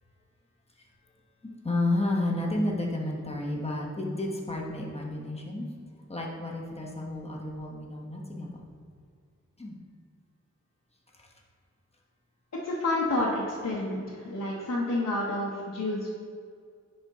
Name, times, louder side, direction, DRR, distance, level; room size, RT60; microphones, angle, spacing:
voice 1, 1.6-5.7 6.1-8.6 9.6-9.8 11.1-11.3, left 2 dB, 20° left, -1 dB, 1.2 m, -31 dB
voice 2, 12.6-16.1, left 2 dB, 60° left, -5 dB, 1.0 m, -29 dB
9.6 x 4.4 x 3.6 m, 2.1 s
wide cardioid pair, 90°, 30 cm